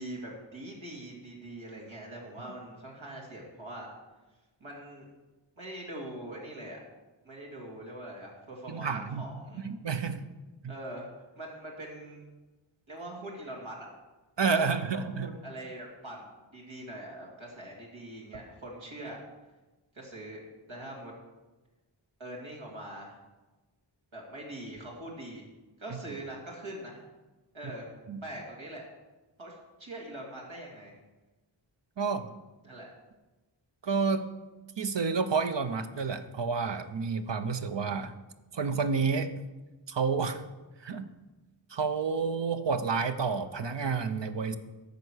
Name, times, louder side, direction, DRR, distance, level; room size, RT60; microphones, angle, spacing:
voice 1, 0.0-3.9 4.6-5.1 5.6-6.8 7.2-9.7 10.7-11.1 11.4-12.2 12.9-13.9 14.5-19.2 19.9-21.1 22.2-23.2 24.1-25.5 25.8-27.0 27.5-27.9 28.2-28.8 29.4-30.9 32.0-32.2 32.6-32.9, right 1 dB, 80° right, -2 dB, 2.8 m, -43 dB
voice 2, 8.7-9.2 9.6-10.2 14.4-15.3 28.1-28.2 32.0-32.3 33.8-34.2 34.8-38.1 38.5-39.3 39.9-40.4 40.8-41.1 41.7-44.6, right 5 dB, 65° right, 9 dB, 0.8 m, -29 dB
10.5 x 6.8 x 6.3 m, 1.1 s
wide cardioid pair, 45°, 46 cm